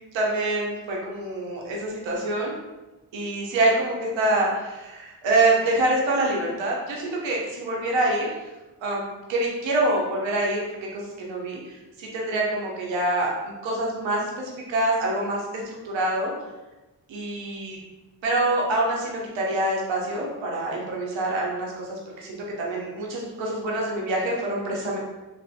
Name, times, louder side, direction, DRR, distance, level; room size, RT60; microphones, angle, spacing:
voice 1, 0.1-2.5 3.1-8.3 8.8-9.0 9.3-10.6 10.9-15.4 15.8-16.3 17.1-17.8 18.2-25.0, right 2 dB, 85° right, -2 dB, 0.7 m, -26 dB
2.5 x 2.4 x 2.4 m, 1.1 s
supercardioid pair, 40°, 44 cm